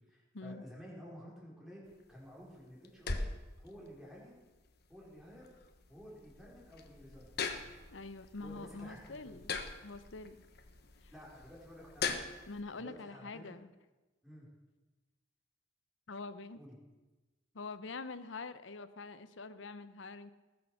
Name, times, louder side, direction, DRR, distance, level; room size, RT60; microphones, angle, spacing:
voice 1, 0.0-1.8 2.1-3.3 3.6-4.4 4.9-5.4 5.9-7.7 8.4-9.4 11.1-12.3 12.8-13.5 14.2-14.5 16.5-16.8, equal, ahead, -5 dB, 4.2 m, -52 dB
sound 1, 1.9-12.6, left 4 dB, 55° left, 1.1 m, -43 dB
voice 2, 7.9-10.4 11.0-11.1 12.5-13.7 16.1-16.6 17.5-20.3, left 3 dB, 75° left, 13 dB, 0.7 m, -45 dB
19.5 x 6.8 x 6.6 m, 1.2 s
head